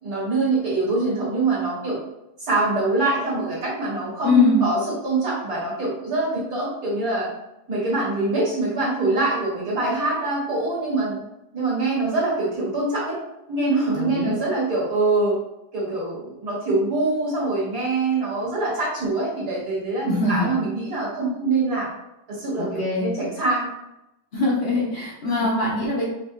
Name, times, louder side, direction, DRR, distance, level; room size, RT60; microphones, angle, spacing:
voice 1, 0.0-2.0 2.4-7.3 7.7-11.2 11.5-13.2 13.5-15.4 15.7-21.9 22.3-23.7 25.2-25.5, right 2 dB, 55° right, -6 dB, 2.0 m, -24 dB
voice 2, 4.2-4.6 13.9-14.3 20.1-20.5 22.6-23.1 24.3-26.0, left 3 dB, 50° left, -5 dB, 0.8 m, -22 dB
4.9 x 2.6 x 2.4 m, 0.89 s
omnidirectional pair, 1.9 m